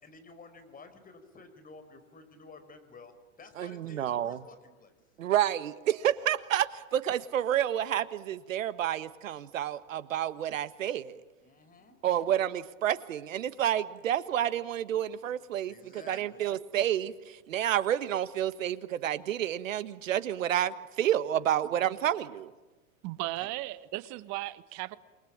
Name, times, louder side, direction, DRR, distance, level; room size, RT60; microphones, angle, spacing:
voice 1, 0.0-4.9 11.4-12.0 14.9-15.0 15.7-16.5 21.3-21.4, left 3 dB, 20° left, 5.2 m, -52 dB
voice 2, 3.6-4.4 5.2-11.2 12.0-22.5, right 11 dB, 75° right, 1.6 m, -29 dB
voice 3, 23.0-25.0, right 18 dB, 45° right, 1.5 m, -36 dB
28.5 x 22.5 x 8.8 m
hypercardioid pair, 105°, 39 cm